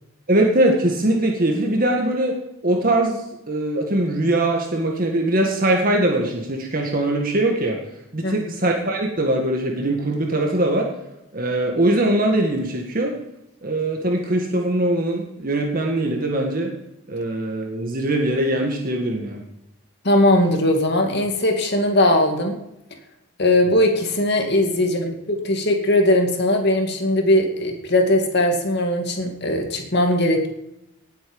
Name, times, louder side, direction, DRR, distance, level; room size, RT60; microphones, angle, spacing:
voice 1, 0.3-2.4 2.6-7.8 8.1-10.9 11.3-13.1 13.6-16.7 17.1-19.4, right 1 dB, 40° right, 1 dB, 1.8 m, -21 dB
voice 2, 20.0-22.6 23.4-30.5, left 1 dB, 50° left, 3 dB, 2.3 m, -19 dB
18.5 x 8.2 x 5.3 m, 0.88 s
head